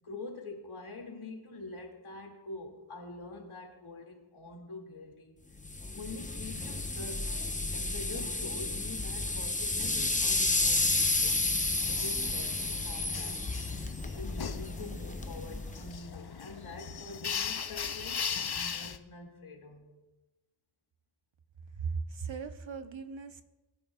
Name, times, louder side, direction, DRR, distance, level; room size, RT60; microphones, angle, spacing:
voice 1, 0.0-5.4 5.9-7.3 7.7-11.4 11.8-13.5 14.1-19.9, left 2 dB, 80° left, 1 dB, 2.3 m, -45 dB
sound 1, 5.6-15.9, left 2 dB, 15° left, 0.8 m, -31 dB
sound 2, 11.8-19.0, left 7 dB, 50° left, 0.7 m, -39 dB
voice 2, 21.7-23.4, right 5 dB, 65° right, 9 dB, 0.9 m, -37 dB
22.0 x 9.4 x 2.3 m, 1.1 s
wide cardioid pair, 60°, 49 cm